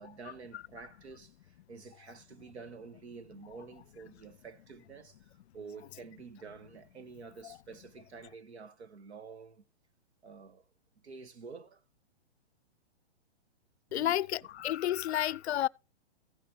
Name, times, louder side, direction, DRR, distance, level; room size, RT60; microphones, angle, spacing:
voice 1, 0.0-9.6 10.2-10.6 10.9-11.8 13.9-14.2, right 5 dB, 80° right, 1.6 m, -49 dB
voice 2, 13.9-15.7, left 12 dB, 75° left, 0.5 m, -31 dB
15.0 x 7.1 x 3.1 m
hypercardioid pair, 160°, 33 cm